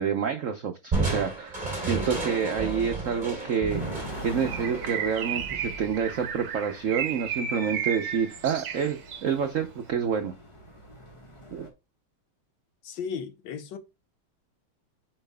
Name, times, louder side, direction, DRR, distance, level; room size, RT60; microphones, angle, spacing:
voice 1, 0.0-3.8 4.2-10.3 11.5-11.7, right 7 dB, 85° right, 0.7 m, -28 dB
Crushing, 0.9-6.3, right 3 dB, 20° right, 3.1 m, -32 dB
sound 1, 3.7-11.7, equal, 15° left, 1.2 m, -44 dB
Bird, 4.4-9.3, right 8 dB, 65° right, 1.5 m, -34 dB
voice 2, 12.8-13.8, left 6 dB, 70° left, 1.3 m, -35 dB
8.8 x 5.6 x 2.2 m
omnidirectional pair, 2.3 m